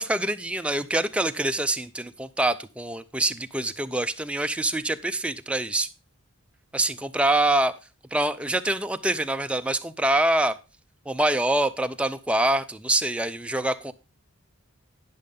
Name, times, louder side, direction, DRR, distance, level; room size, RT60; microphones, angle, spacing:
voice 1, 0.0-5.9 6.7-7.8 8.1-10.6 11.1-13.9, right 1 dB, 5° right, 9 dB, 0.4 m, -25 dB
10.0 x 6.6 x 5.2 m, 0.32 s
head